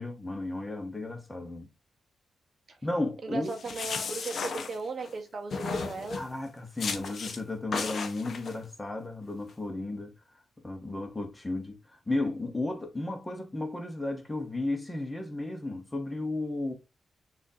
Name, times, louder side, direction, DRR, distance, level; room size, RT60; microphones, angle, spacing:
voice 1, 0.0-1.7 2.8-3.5 6.1-10.1 10.6-11.8 12.1-16.7, left 2 dB, 15° left, 0.9 m, -34 dB
voice 2, 3.3-6.2, right 3 dB, 45° right, 0.7 m, -36 dB
sound 1, 3.5-5.1 5.5-6.3 6.8-7.4 7.7-8.5, left 5 dB, 60° left, 0.6 m, -35 dB
6.3 x 2.5 x 2.7 m
wide cardioid pair, 130°, 0 cm